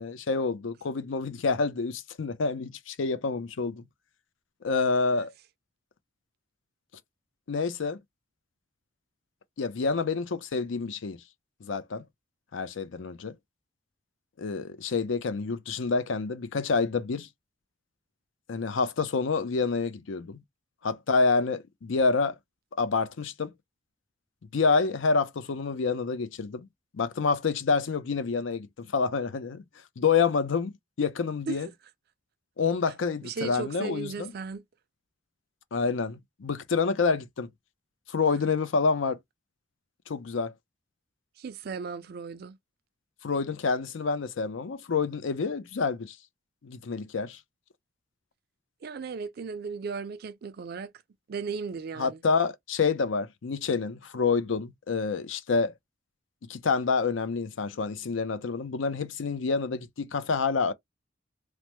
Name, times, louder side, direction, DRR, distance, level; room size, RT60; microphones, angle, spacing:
voice 1, 0.0-3.8 4.6-5.3 7.5-8.0 9.6-11.2 11.6-12.0 12.5-13.3 14.4-17.3 18.5-20.4 20.8-22.4 22.8-23.5 24.5-26.7 26.9-29.6 30.0-31.7 32.6-34.3 35.7-37.5 38.1-39.2 40.1-40.5 43.2-46.2 46.6-47.4 52.0-55.7 56.5-60.7, left 4 dB, 80° left, 0.5 m, -28 dB
voice 2, 33.2-34.6 41.4-42.6 48.8-50.9 51.3-52.2, right 5 dB, 50° right, 0.4 m, -36 dB
3.2 x 2.0 x 2.9 m
head